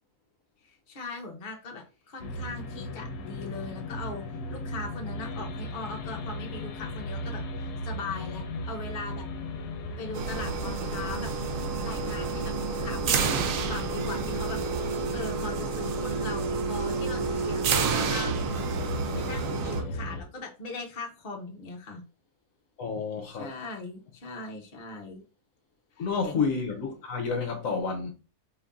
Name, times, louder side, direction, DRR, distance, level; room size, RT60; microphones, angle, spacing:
voice 1, 0.6-4.2 4.5-7.4 7.8-9.2 10.0-11.3 11.8-14.6 15.1-18.7 19.1-22.0 23.3-25.2 26.0-26.4, left 3 dB, 40° left, 0.9 m, -40 dB
sound 1, 2.2-20.2, left 1 dB, 90° left, 1.2 m, -36 dB
sound 2, 10.1-19.8, right 5 dB, 65° right, 0.9 m, -30 dB
voice 2, 22.8-23.5 26.0-28.1, left 5 dB, 65° left, 1.1 m, -30 dB
4.5 x 2.7 x 3.5 m
omnidirectional pair, 1.7 m